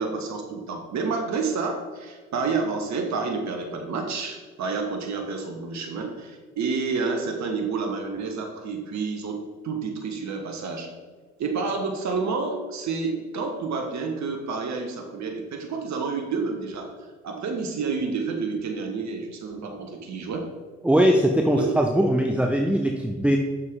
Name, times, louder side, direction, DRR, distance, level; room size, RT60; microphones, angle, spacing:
voice 1, 0.0-10.9 11.4-20.5 21.5-21.8, right 4 dB, 50° right, 3 dB, 1.4 m, -29 dB
voice 2, 20.8-23.4, equal, 5° right, 2 dB, 0.8 m, -21 dB
8.5 x 6.5 x 3.8 m, 1.5 s
hypercardioid pair, 55°, 36 cm